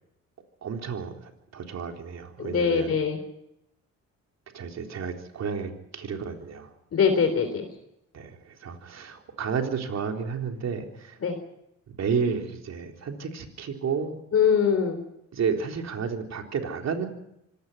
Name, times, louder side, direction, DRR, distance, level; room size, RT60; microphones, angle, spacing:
voice 1, 0.6-3.0 4.5-6.7 8.1-11.2 11.9-14.2 15.3-17.1, right 6 dB, 60° right, 3 dB, 3.9 m, -31 dB
voice 2, 2.4-3.2 6.9-7.6 11.2-11.4 14.3-15.0, left 6 dB, 50° left, 6 dB, 3.5 m, -22 dB
25.5 x 18.0 x 5.7 m, 0.81 s
cardioid pair, 90°, 30 cm